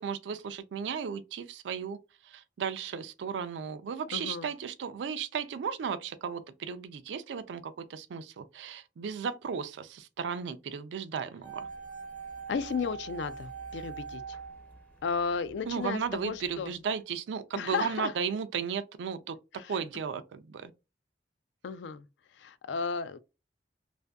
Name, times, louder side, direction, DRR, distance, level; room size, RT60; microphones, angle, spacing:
voice 1, 0.0-2.0 2.2-11.7 15.7-19.4 19.7-20.7, right 6 dB, 80° right, 0.3 m, -35 dB
voice 2, 4.1-4.5 12.5-14.4 15.0-16.7 17.5-18.1 19.5-19.8 21.6-22.1 22.3-23.2, left 5 dB, 75° left, 0.3 m, -34 dB
sound 1, 11.4-15.5 15.8-15.9, right 5 dB, 10° left, 0.5 m, -42 dB
2.5 x 2.5 x 2.2 m
head